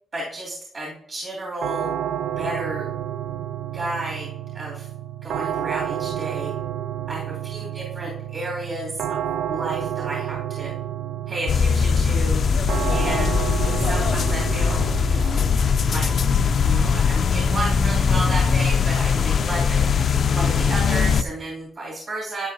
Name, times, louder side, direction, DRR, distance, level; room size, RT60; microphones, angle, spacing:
voice 1, 0.1-1.9 2.4-2.9 3.7-4.9 5.2-6.5 7.1-7.2 7.5-10.7 11.3-12.4 12.9-13.4 13.8-15.5 15.9-16.1 16.6-20.0 20.3-22.5, right 1 dB, 45° right, -5 dB, 2.7 m, -32 dB
sound 1, 1.6-20.5, right 11 dB, 90° right, 0.3 m, -31 dB
sound 2, 11.5-21.2, left 6 dB, 50° left, 0.3 m, -20 dB
11.5 x 8.5 x 2.7 m, 0.76 s
cardioid pair, 135°, 0 cm